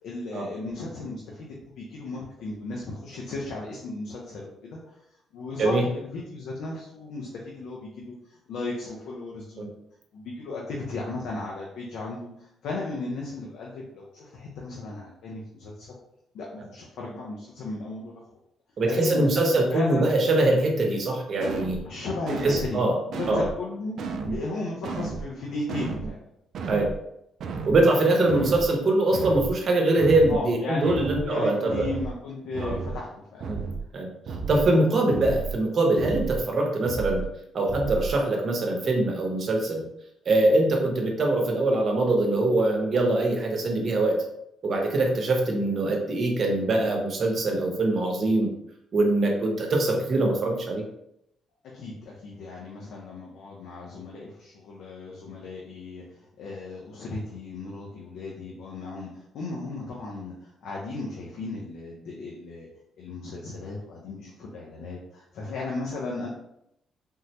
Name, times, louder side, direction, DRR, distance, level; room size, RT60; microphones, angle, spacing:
voice 1, 0.0-4.9 5.3-9.8 10.1-15.9 16.3-18.2 18.8-20.1 21.6-22.8 23.1-26.2 30.3-33.5 51.7-62.7 63.0-66.3, left 2 dB, 80° left, -3 dB, 0.6 m, -36 dB
voice 2, 18.8-21.8 22.4-22.9 23.3-23.4 24.3-24.4 26.7-26.9 27.7-31.9 32.6-32.7 33.5-33.6 33.9-34.1 34.5-37.2 37.5-39.8 40.3-44.2 44.6-48.5 48.9-50.8, right 2 dB, 50° right, 1 dB, 0.8 m, -23 dB
sound 1, 21.4-21.8 22.3-22.7 23.1-23.5 24.0-24.4 24.8-25.3 25.7-26.1 26.5-27.0 27.4-27.8 28.3-28.7 29.1-29.5 30.0-30.4 30.8-31.3 31.7-32.1 32.5-33.0 33.4-33.8 34.3-34.7 35.1-35.6 36.0-36.4 36.8-37.3 37.7-38.2, right 4 dB, 65° right, 0.3 m, -33 dB
3.6 x 2.1 x 2.8 m, 0.78 s
cardioid pair, 90°, 0 cm